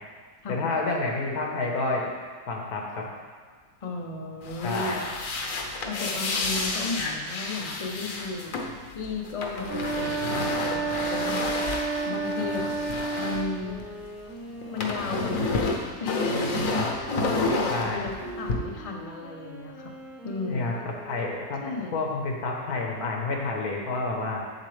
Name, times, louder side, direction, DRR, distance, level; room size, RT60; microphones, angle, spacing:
voice 1, 0.5-2.1 2.5-3.1 4.6-5.0 17.7-18.1 20.5-21.6 21.9-24.4, left 3 dB, 80° left, 0 dB, 1.6 m, -29 dB
voice 2, 3.8-5.0 5.8-8.6 8.9-12.8 13.2-13.8 14.7-16.3 16.7-19.9 20.2-20.7 21.6-22.0, left 3 dB, 40° left, 1 dB, 0.5 m, -35 dB
sound 1, 4.4-14.2 14.5-18.5, left 3 dB, 65° left, 1.2 m, -30 dB
sound 2, 9.6-13.6, right 4 dB, 80° right, 1.4 m, -30 dB
Wind instrument woodwind instrument, 13.6-21.9, right 2 dB, ahead, 0.7 m, -42 dB
7.6 x 7.4 x 3.3 m, 1.5 s
omnidirectional pair, 1.6 m